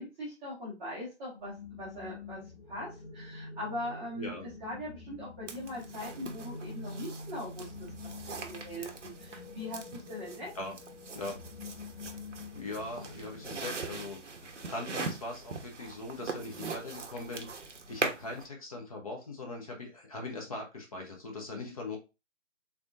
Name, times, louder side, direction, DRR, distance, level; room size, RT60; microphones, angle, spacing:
voice 1, 0.0-2.4 2.7-7.9 8.3-10.5 21.6-21.7, left 1 dB, 5° right, -11 dB, 0.7 m, -41 dB
sound 1, 1.4-14.1, left 3 dB, 55° left, 1.4 m, -46 dB
voice 2, 4.2-4.5 10.5-10.8 11.1-11.4 12.6-14.2 14.5-17.5 17.9-22.0, left 2 dB, 30° left, 1 dB, 0.8 m, -40 dB
sound 2, 5.5-18.5, right 4 dB, 80° right, 0.8 m, -41 dB
3.6 x 3.6 x 2.5 m, 0.27 s
figure-of-eight pair, 145°, 36 cm